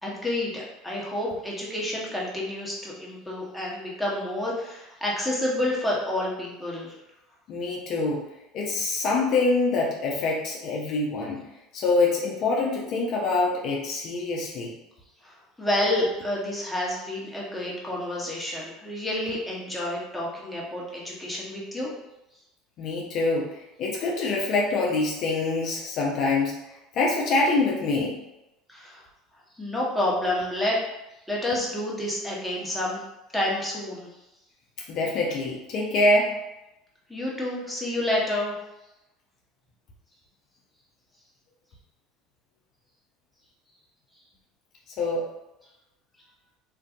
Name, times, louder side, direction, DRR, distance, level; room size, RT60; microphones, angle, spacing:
voice 1, 0.0-6.9 15.2-21.9 28.7-29.0 29.6-30.8 31.3-33.0 33.3-34.1 37.1-38.5, left 1 dB, 5° left, -5 dB, 1.0 m, -29 dB
voice 2, 7.5-8.2 8.5-11.5 11.7-14.7 22.8-26.5 26.9-28.2 34.9-36.3 45.0-45.3, left 3 dB, 55° left, -2 dB, 0.5 m, -25 dB
2.6 x 2.5 x 2.4 m, 0.93 s
hypercardioid pair, 80°, 0 cm